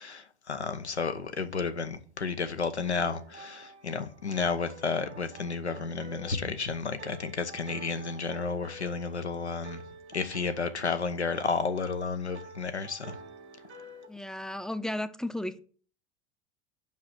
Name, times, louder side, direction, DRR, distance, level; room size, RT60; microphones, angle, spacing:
voice 1, 0.0-9.8 10.1-13.1, left 4 dB, 90° left, 1.0 m, -32 dB
sound 1, 2.8-14.1, right 2 dB, 85° right, 1.9 m, -49 dB
voice 2, 14.1-15.6, left 1 dB, ahead, 0.6 m, -34 dB
7.5 x 5.9 x 5.9 m
figure-of-eight pair, 80°, 33 cm